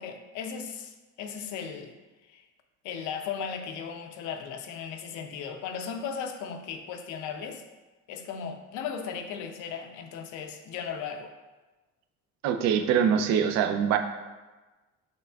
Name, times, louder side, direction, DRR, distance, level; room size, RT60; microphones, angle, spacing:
voice 1, 0.0-1.9 2.3-2.4 2.8-7.6 8.1-11.3, left 7 dB, 80° left, 6 dB, 0.5 m, -36 dB
voice 2, 12.4-14.0, right 8 dB, 65° right, 6 dB, 0.5 m, -23 dB
5.6 x 3.5 x 2.3 m, 1.2 s
cardioid pair, 120°, 29 cm